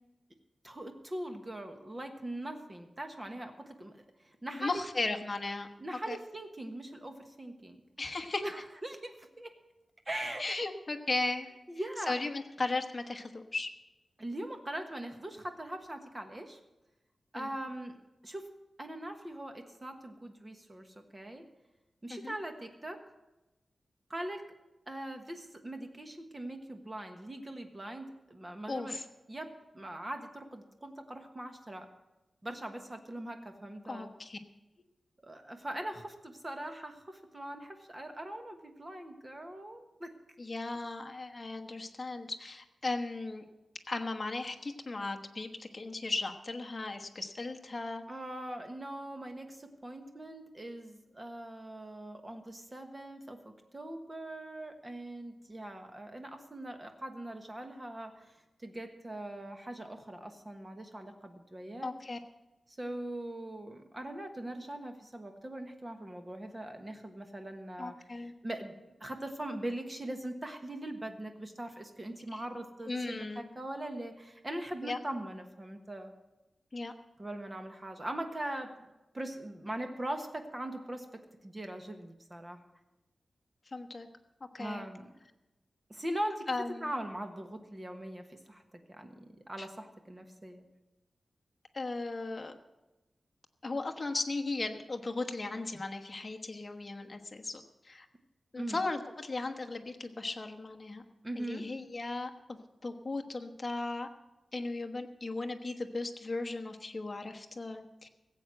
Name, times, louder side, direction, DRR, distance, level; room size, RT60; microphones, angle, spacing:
voice 1, 0.6-4.8 5.8-7.8 8.4-9.5 10.1-10.6 11.7-12.1 14.2-16.6 17.3-18.0 18.2-18.5 18.8-21.4 22.0-23.0 24.1-24.4 24.9-29.0 29.3-31.9 32.4-34.1 35.2-40.1 48.1-61.9 62.7-68.0 68.4-76.1 77.2-78.7 79.1-82.6 84.6-85.1 85.9-86.5 86.8-90.6 98.6-98.8 101.2-101.6, right 1 dB, 20° right, 5 dB, 1.3 m, -41 dB
voice 2, 4.6-5.7 6.1-6.2 8.0-8.4 10.4-11.5 12.1-13.7 17.3-17.5 22.1-22.3 28.7-29.0 33.9-34.4 40.4-43.4 43.9-48.0 61.8-62.2 67.8-68.3 72.3-72.4 72.9-73.5 74.8-75.0 76.7-76.9 83.7-84.1 84.5-84.8 86.5-86.9 89.6-89.7 91.7-92.6 93.6-98.1 98.5-101.0 101.3-102.6 102.8-104.1 104.5-108.1, left 3 dB, 30° left, 5 dB, 1.1 m, -36 dB
15.5 x 7.9 x 7.7 m, 1.0 s
wide cardioid pair, 165°, 0 cm